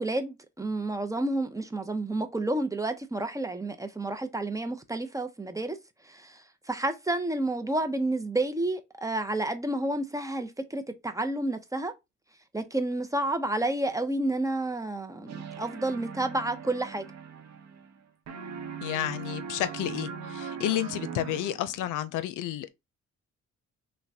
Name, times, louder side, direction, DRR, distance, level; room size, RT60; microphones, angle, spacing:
voice 1, 0.0-5.8 6.0-11.9 12.5-17.1, right 2 dB, 10° right, 0.5 m, -30 dB
sound 1, 15.3-18.0 18.3-21.9, right 6 dB, 60° right, 0.8 m, -40 dB
voice 2, 18.8-22.7, left 12 dB, 85° left, 0.5 m, -31 dB
5.6 x 2.2 x 2.7 m
cardioid pair, 90°, 30 cm